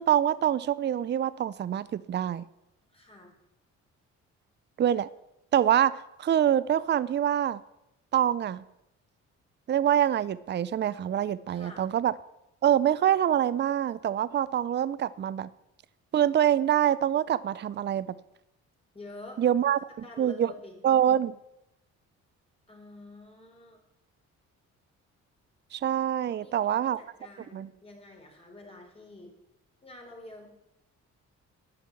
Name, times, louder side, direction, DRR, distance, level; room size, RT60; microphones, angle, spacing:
voice 1, 0.0-2.5 4.8-5.1 5.5-7.6 8.1-8.6 9.7-12.1 12.6-15.5 16.1-18.2 19.4-19.8 20.2-20.5 20.8-21.3 25.7-27.0 27.5-27.7, right 10 dB, 35° right, 18 dB, 0.5 m, -25 dB
voice 2, 2.9-3.3 11.5-11.9 18.9-19.4 20.0-20.8 22.7-23.8 26.3-29.3 29.8-30.5, left 2 dB, 20° left, 0 dB, 4.1 m, -48 dB
12.0 x 6.8 x 7.5 m, 0.87 s
cardioid pair, 90°, 30 cm